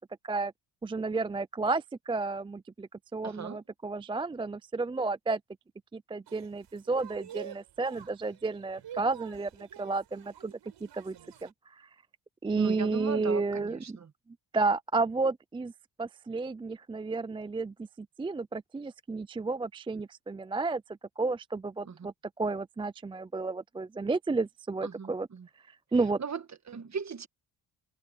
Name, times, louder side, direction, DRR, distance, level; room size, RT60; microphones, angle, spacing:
voice 1, 0.8-5.4 5.9-10.5 10.8-11.2 11.4-11.9 12.4-14.0 14.5-15.7 16.0-20.8 21.2-25.3 25.9-26.2, right 3 dB, 15° right, 0.3 m, -32 dB
voice 2, 3.2-3.6 12.5-14.1 21.8-22.0 24.8-25.5 26.2-27.3, right 5 dB, 40° right, 1.5 m, -38 dB
sound 1, 6.3-11.5, right 10 dB, 75° right, 4.8 m, -48 dB
cardioid pair, 90°, 44 cm